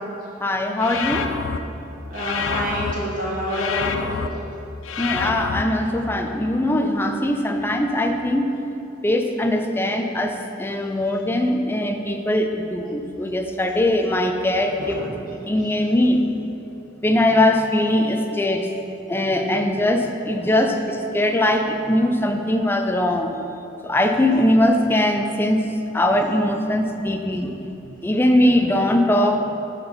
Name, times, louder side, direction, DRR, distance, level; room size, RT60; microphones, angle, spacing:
voice 1, 0.4-1.3 5.0-8.6 9.0-15.0 15.5-16.3 17.0-18.7 19.1-23.4 23.8-25.7 25.9-27.6 28.0-29.4, left 1 dB, 10° left, 4 dB, 0.4 m, -21 dB
sound 1, 0.8-1.6 2.1-2.9 3.5-4.3 4.8-5.6, left 6 dB, 85° left, 0.5 m, -27 dB
voice 2, 2.1-4.1 14.8-15.0, equal, 45° right, -6 dB, 1.9 m, -27 dB
9.7 x 4.5 x 5.1 m, 3.0 s
head